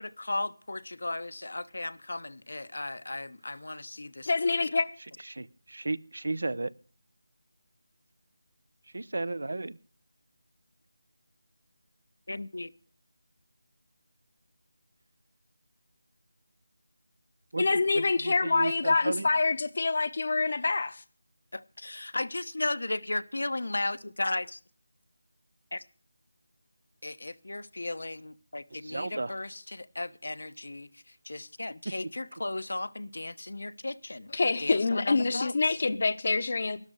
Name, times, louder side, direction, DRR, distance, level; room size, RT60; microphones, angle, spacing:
voice 1, 0.0-4.3 12.3-12.7 21.5-24.6 25.7-25.8 27.0-34.3 34.6-35.8, left 2 dB, 75° left, 1.0 m, -35 dB
voice 2, 4.3-4.9 17.6-21.0 34.3-36.8, left 3 dB, 40° left, 0.9 m, -26 dB
voice 3, 5.3-6.7 8.9-9.8 17.5-19.3 28.8-29.3, right 2 dB, 65° right, 0.8 m, -34 dB
13.0 x 12.0 x 6.4 m
figure-of-eight pair, 175°, 0 cm